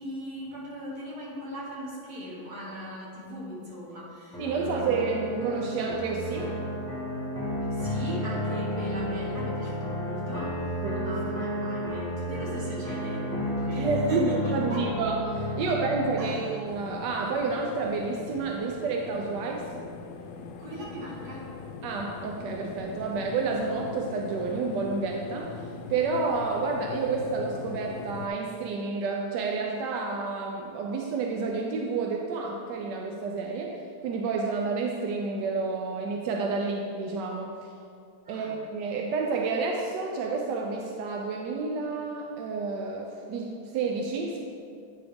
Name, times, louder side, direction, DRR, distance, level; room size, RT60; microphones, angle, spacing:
voice 1, 0.0-5.0 7.7-14.8 16.2-16.6 20.6-21.5 38.2-38.6, equal, 50° right, -5 dB, 2.1 m, -39 dB
sound 1, 4.3-16.3, equal, 5° left, 1.0 m, -32 dB
voice 2, 4.4-6.5 10.8-11.2 13.8-19.7 21.8-25.6 25.9-37.5 38.3-44.4, right 4 dB, 70° right, 1 dB, 1.0 m, -30 dB
sound 2, 16.6-28.3, left 5 dB, 80° left, 1.4 m, -41 dB
9.5 x 5.4 x 3.5 m, 2.4 s
omnidirectional pair, 2.3 m